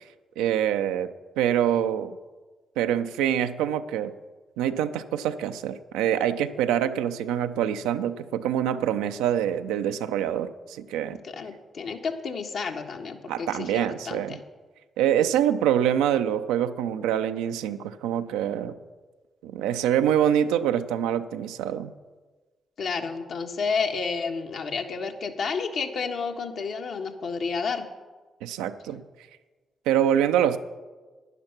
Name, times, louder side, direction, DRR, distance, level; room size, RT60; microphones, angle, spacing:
voice 1, 0.4-2.2 2.8-4.1 4.6-11.2 13.3-14.4 15.0-18.8 19.4-21.9 28.4-29.0 29.9-30.6, right 10 dB, 85° right, 10 dB, 0.5 m, -25 dB
voice 2, 11.2-14.4 22.8-27.9, left 5 dB, 65° left, 4 dB, 1.3 m, -31 dB
11.0 x 10.5 x 5.9 m, 1.3 s
hypercardioid pair, 45°, 0 cm